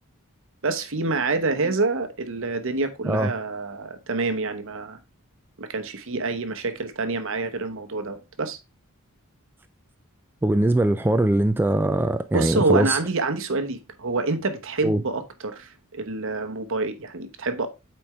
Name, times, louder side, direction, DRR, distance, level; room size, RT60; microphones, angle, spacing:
voice 1, 0.6-5.0 5.6-8.6 12.3-17.7, right 3 dB, 60° right, 1.0 m, -27 dB
voice 2, 10.4-13.0 14.8-15.0, right 1 dB, 10° right, 0.3 m, -21 dB
8.4 x 4.4 x 3.2 m
head